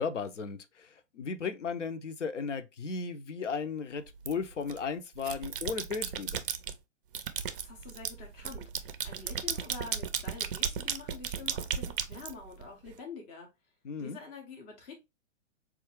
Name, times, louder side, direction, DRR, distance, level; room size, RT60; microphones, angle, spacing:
voice 1, 0.0-6.4 13.8-14.2, left 5 dB, 75° left, 0.7 m, -35 dB
sound 1, 4.2-4.8 5.2-6.7 7.1-12.9, right 8 dB, 45° right, 0.4 m, -35 dB
voice 2, 7.6-13.5 14.0-14.9, left 4 dB, 10° left, 0.4 m, -46 dB
4.2 x 2.4 x 2.8 m
figure-of-eight pair, 115°, 37 cm